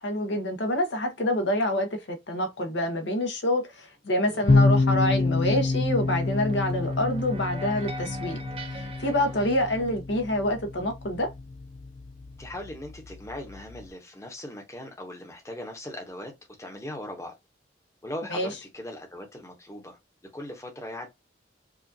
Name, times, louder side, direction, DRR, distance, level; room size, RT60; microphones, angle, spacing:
voice 1, 0.0-8.4 8.6-11.3 18.3-18.5, left 1 dB, 75° left, 1.0 m, -27 dB
sound 1, 4.3-9.8, right 2 dB, 30° right, 0.5 m, -43 dB
sound 2, 4.5-13.9, left 3 dB, 45° left, 0.7 m, -28 dB
voice 2, 12.4-16.3 16.6-17.3 18.0-20.0 20.3-21.1, left 1 dB, 15° left, 0.9 m, -39 dB
4.9 x 2.5 x 2.7 m
head